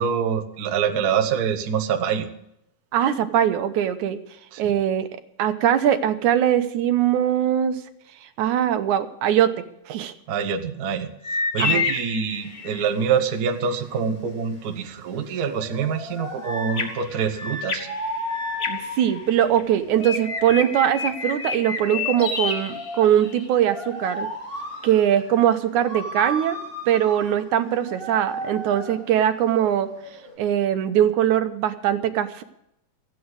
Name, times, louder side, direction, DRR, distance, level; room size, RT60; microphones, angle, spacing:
voice 1, 0.0-2.3 4.5-4.6 10.3-11.1 11.5-17.9, right 7 dB, 65° right, 7 dB, 0.9 m, -25 dB
voice 2, 2.9-4.2 4.6-5.1 5.4-7.8 8.4-9.5 9.9-10.1 11.6-11.9 18.7-24.3 24.8-26.6 26.9-29.9 30.4-32.4, right 10 dB, 85° right, 9 dB, 2.3 m, -21 dB
sound 1, 11.2-13.0 16.4-19.6 20.0-23.5, left 4 dB, 75° left, 0.6 m, -29 dB
sound 2, 12.3-30.4, equal, 15° left, 4.3 m, -36 dB
14.5 x 9.2 x 8.1 m, 0.78 s
omnidirectional pair, 3.4 m